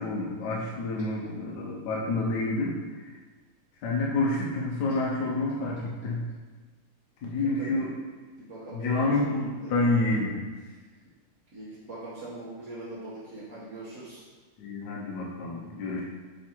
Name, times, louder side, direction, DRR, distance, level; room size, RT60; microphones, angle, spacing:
voice 1, 0.0-2.7 3.0-3.1 3.8-6.2 7.2-7.9 8.7-10.4 14.6-16.0, left 2 dB, 65° left, -3 dB, 1.2 m, -28 dB
voice 2, 7.2-7.7 8.4-9.8 10.6-10.8 11.5-14.2, right 2 dB, 45° right, -10 dB, 1.2 m, -42 dB
7.2 x 3.2 x 4.4 m, 1.4 s
omnidirectional pair, 2.4 m